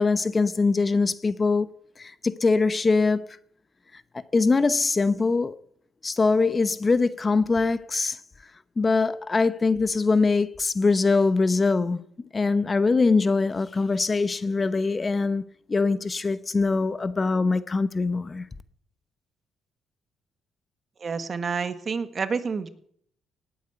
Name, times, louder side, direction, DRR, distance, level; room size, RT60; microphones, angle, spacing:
voice 1, 0.0-3.2 4.3-5.5 6.0-8.2 8.8-12.0 12.3-15.4 15.7-18.5, left 4 dB, 30° left, 0.9 m, -23 dB
voice 2, 21.0-22.7, right 5 dB, 40° right, 1.6 m, -29 dB
18.5 x 9.2 x 8.0 m
cardioid pair, 90°, 0 cm